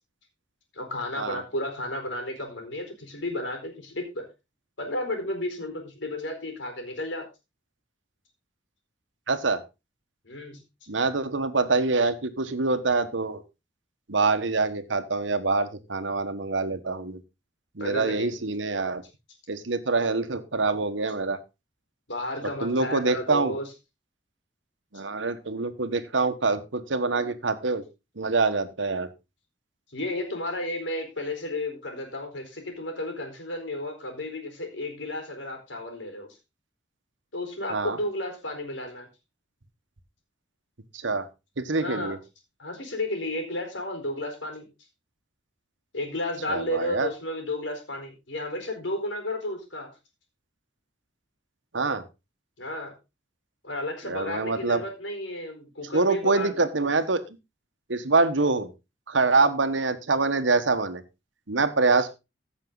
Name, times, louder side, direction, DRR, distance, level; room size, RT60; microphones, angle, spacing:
voice 1, 0.7-4.2 4.8-7.3 10.2-10.6 17.8-18.4 22.1-23.7 29.9-36.3 37.3-39.1 41.8-42.2 42.6-44.7 45.9-49.9 52.6-52.9 53.6-56.9 61.8-61.9, left 1 dB, 75° left, 4 dB, 4.3 m, -33 dB
voice 2, 9.3-9.6 10.9-13.4 14.1-17.2 17.7-19.0 19.5-21.4 22.6-23.6 24.9-27.8 28.2-29.1 37.7-38.0 40.9-41.3 41.6-42.2 46.5-47.1 51.7-52.0 54.1-54.8 55.9-57.2 57.9-58.7 59.1-61.0 61.5-62.1, right 3 dB, 90° right, 11 dB, 1.3 m, -25 dB
15.5 x 6.6 x 3.9 m, 0.26 s
head